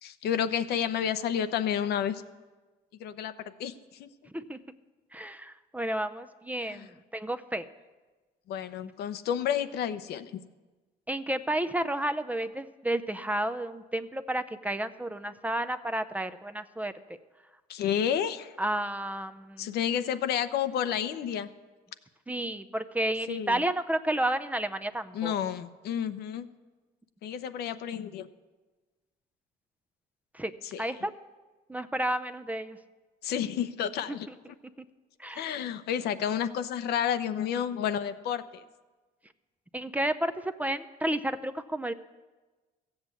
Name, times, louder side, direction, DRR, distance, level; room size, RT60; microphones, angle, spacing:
voice 1, 0.0-2.2 3.0-4.1 6.7-6.9 8.5-10.4 17.7-18.6 19.6-21.5 23.3-23.6 25.1-26.5 27.2-28.3 30.7-30.8 33.2-34.3 35.4-38.6, left 9 dB, 70° left, 11 dB, 0.8 m, -30 dB
voice 2, 5.1-7.7 11.1-16.9 18.6-19.7 22.3-25.3 30.3-30.5 30.8-31.1 31.7-32.8 34.1-34.2 35.2-35.5 39.7-41.9, right 1 dB, 10° right, 10 dB, 0.5 m, -31 dB
14.5 x 8.0 x 8.3 m, 1.3 s
cardioid pair, 110°, 17 cm